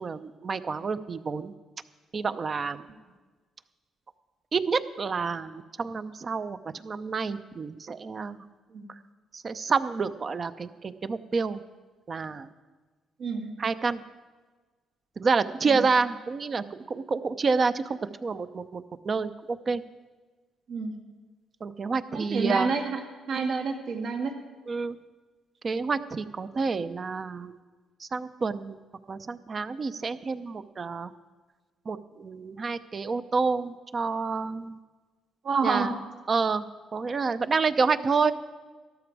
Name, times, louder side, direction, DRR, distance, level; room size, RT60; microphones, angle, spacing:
voice 1, 0.0-1.5 2.1-2.8 4.5-8.5 8.9-9.0 9.3-11.6 12.1-12.5 13.6-14.0 15.2-19.8 21.6-22.7 23.3-23.4 24.7-25.0 25.6-27.6 28.0-28.8 29.1-31.1 31.9-34.8 35.6-36.0 36.3-38.3, right 4 dB, 40° right, 12 dB, 0.6 m, -29 dB
voice 2, 13.2-13.5 15.7-15.8 20.7-21.0 22.1-24.3 35.4-35.9, right 4 dB, 70° right, 3 dB, 1.9 m, -29 dB
13.0 x 12.5 x 4.8 m, 1.3 s
cardioid pair, 90°, 0 cm